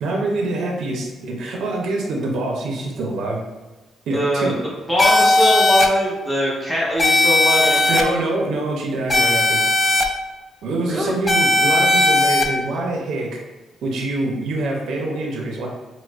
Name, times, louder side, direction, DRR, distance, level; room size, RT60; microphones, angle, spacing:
voice 1, 0.0-3.4 4.1-4.6 7.9-9.6 10.6-13.4 13.8-15.7, right 2 dB, 75° right, 0 dB, 0.5 m, -25 dB
voice 2, 4.1-4.5 4.9-8.1 10.9-11.1, equal, 5° right, -6 dB, 1.0 m, -21 dB
sound 1, 5.0-5.9 7.0-8.0 9.1-10.0 11.3-12.4, left 2 dB, 20° left, 0.4 m, -16 dB
4.5 x 2.1 x 2.4 m, 1.1 s
cardioid pair, 90°, 0 cm